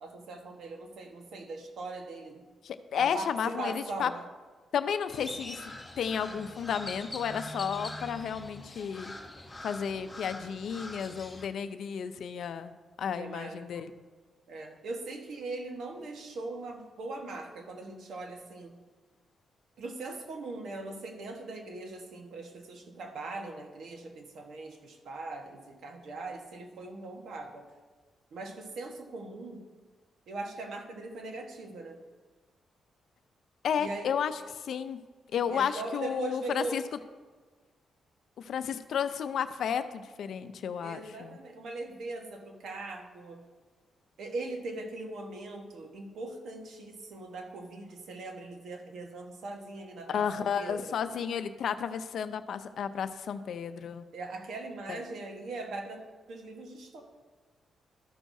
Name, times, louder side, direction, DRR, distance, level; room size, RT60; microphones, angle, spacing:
voice 1, 0.0-2.4 3.0-4.2 13.2-13.9 14.5-18.8 19.8-27.7 28.3-29.6 30.3-32.0 33.8-34.1 35.5-36.8 40.8-43.4 44.2-51.0 54.1-56.0 56.3-57.0, right 3 dB, 75° right, 3 dB, 1.2 m, -40 dB
voice 2, 2.6-4.1 4.7-9.2 9.6-12.7 13.0-13.9 33.6-35.0 35.3-36.8 38.4-41.4 50.1-54.0 54.9-55.0, left 7 dB, 75° left, 11 dB, 0.5 m, -32 dB
Crow, 5.1-11.4, left 1 dB, 10° left, 1.2 m, -43 dB
13.5 x 6.2 x 2.7 m, 1.4 s
cardioid pair, 80°, 0 cm